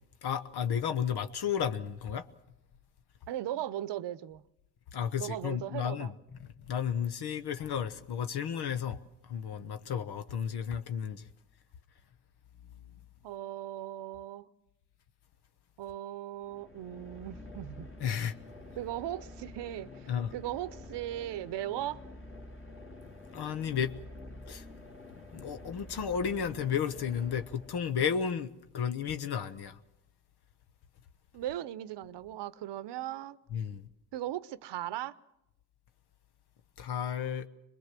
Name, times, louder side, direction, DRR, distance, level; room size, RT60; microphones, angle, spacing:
voice 1, 0.2-2.3 4.9-6.1 6.7-9.0 9.2-11.2 18.0-18.3 20.1-20.3 23.3-23.9 24.5-24.6 25.3-29.8 33.5-33.8 36.8-37.5, left 8 dB, 65° left, 1.1 m, -33 dB
voice 2, 3.3-4.4 5.2-6.1 13.2-14.5 15.8-17.9 18.8-22.0 31.3-33.4 34.1-35.1, right 13 dB, 70° right, 0.9 m, -38 dB
sound 1, 16.4-28.2, left 2 dB, 30° left, 2.5 m, -49 dB
22.5 x 20.5 x 7.5 m
supercardioid pair, 70°, 43 cm